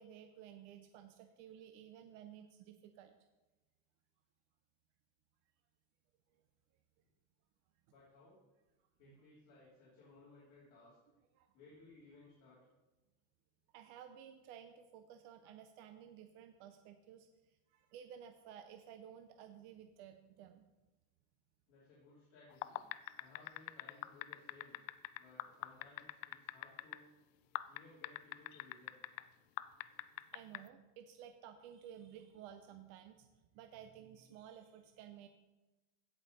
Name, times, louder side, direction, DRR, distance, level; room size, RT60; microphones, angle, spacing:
voice 1, 0.0-3.2 9.1-9.2 11.3-11.5 13.7-17.3 17.7-20.7 30.3-33.3 33.5-35.3, right 9 dB, 45° right, 7 dB, 0.5 m, -54 dB
voice 2, 7.9-8.4 9.0-11.0 11.5-12.6 21.7-22.8 23.2-24.8 25.2-27.1 27.7-29.0, left 3 dB, 45° left, -9 dB, 3.2 m, -61 dB
sound 1, 22.5-27.0 27.5-29.2 29.6-30.6, left 19 dB, 75° left, 0.5 m, -42 dB
16.0 x 5.5 x 4.1 m, 1.1 s
cardioid pair, 180°, 38 cm